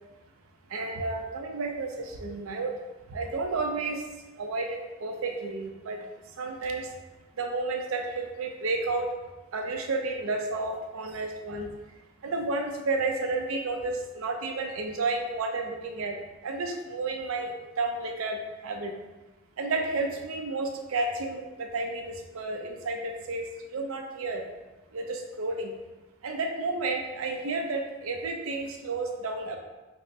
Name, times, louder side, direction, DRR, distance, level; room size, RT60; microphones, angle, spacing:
voice 1, 0.7-2.7 3.1-4.1 4.4-6.1 6.4-6.9 7.4-9.2 9.5-11.7 12.2-16.2 16.4-19.0 19.6-24.5 24.9-25.7 26.2-29.6, right 3 dB, 90° right, 3 dB, 0.5 m, -31 dB
5.2 x 2.0 x 2.5 m, 1.1 s
head